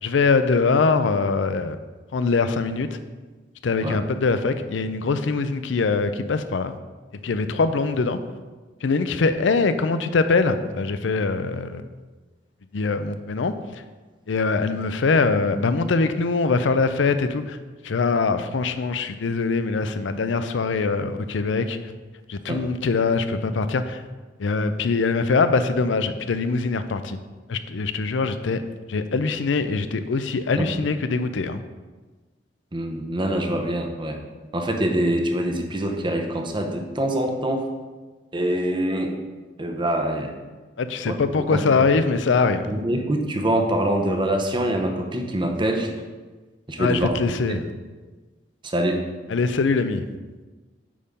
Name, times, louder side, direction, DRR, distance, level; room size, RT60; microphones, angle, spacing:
voice 1, 0.0-1.8 2.1-3.0 3.6-6.7 7.2-8.2 8.8-11.8 12.7-13.8 14.3-17.6 17.8-21.9 22.3-24.0 24.4-27.2 27.5-28.6 28.9-31.6 40.8-42.7 46.8-47.6 49.3-50.1, left 4 dB, 80° left, 10 dB, 0.5 m, -23 dB
voice 2, 32.7-34.2 34.5-37.7 38.3-39.2 39.6-40.3 41.0-41.8 42.7-45.9 46.7-47.6 48.6-49.0, right 1 dB, 25° right, 4 dB, 0.8 m, -25 dB
8.5 x 3.7 x 5.2 m, 1.3 s
head